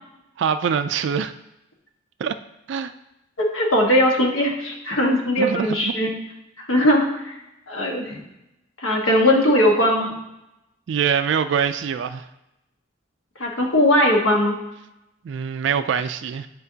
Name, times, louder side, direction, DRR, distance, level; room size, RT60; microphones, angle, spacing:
voice 1, 0.4-1.3 2.2-2.3 2.7-2.9 5.4-5.9 10.9-12.2 15.2-16.5, right 7 dB, 65° right, 11 dB, 0.3 m, -24 dB
voice 2, 3.4-6.1 6.7-7.4 7.7-8.2 8.8-10.1 13.4-14.6, left 1 dB, 90° left, 0 dB, 1.4 m, -19 dB
10.0 x 4.5 x 2.8 m, 0.89 s
head